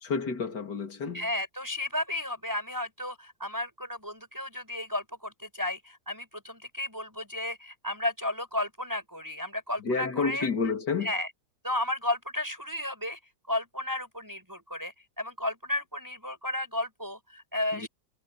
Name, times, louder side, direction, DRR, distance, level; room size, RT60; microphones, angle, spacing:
voice 1, 0.0-1.3 9.8-11.1 17.7-17.9, left 4 dB, 75° left, 3.6 m, -30 dB
voice 2, 1.1-10.5 11.0-11.3 11.6-13.2 13.5-17.9, left 1 dB, 10° right, 6.5 m, -33 dB
omnidirectional pair, 1.8 m